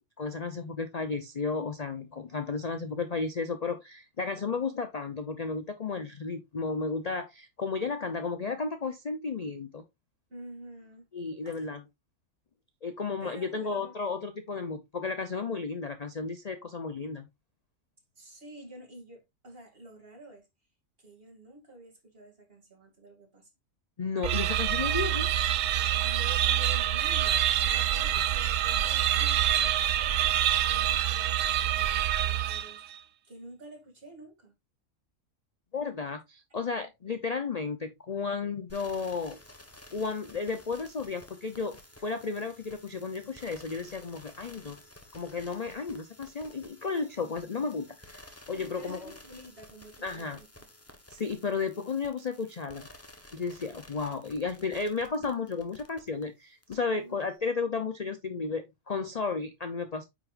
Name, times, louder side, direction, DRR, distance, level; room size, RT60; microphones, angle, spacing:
voice 1, 0.0-9.8 11.1-11.8 12.8-17.3 24.0-25.3 35.7-39.4 39.9-44.8 45.1-49.1 50.0-50.4 51.1-52.9 53.3-60.0, left 4 dB, 40° left, 0.6 m, -33 dB
voice 2, 10.3-11.1 11.4-11.6 13.2-14.0 18.2-20.5 21.0-23.5 26.0-32.8 33.2-34.5 48.5-50.7 56.9-57.3, right 1 dB, 40° right, 2.7 m, -49 dB
sound 1, 24.2-32.9, right 11 dB, 70° right, 0.9 m, -26 dB
sound 2, 38.7-56.2 56.6-56.7, left 1 dB, 10° left, 1.0 m, -53 dB
8.9 x 6.1 x 2.5 m
omnidirectional pair, 1.5 m